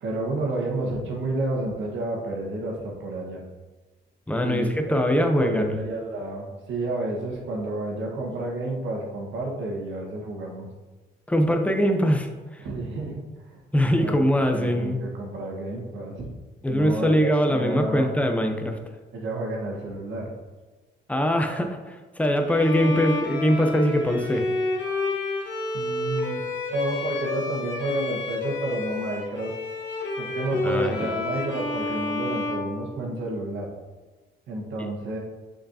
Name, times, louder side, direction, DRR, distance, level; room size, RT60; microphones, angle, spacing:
voice 1, 0.0-3.4 4.4-10.7 12.6-13.2 13.9-14.2 14.5-16.3 16.7-18.1 19.1-20.3 25.7-26.4 26.7-29.5 30.2-33.7 34.5-35.2, right 2 dB, 75° right, -2 dB, 1.5 m, -30 dB
voice 2, 4.3-5.8 11.3-12.6 13.7-15.0 16.6-18.8 21.1-24.5 30.6-31.1, equal, 5° left, 4 dB, 0.8 m, -22 dB
Bowed string instrument, 22.4-33.4, left 3 dB, 65° left, 1.4 m, -30 dB
6.5 x 5.6 x 2.9 m, 1.3 s
cardioid pair, 90°, 20 cm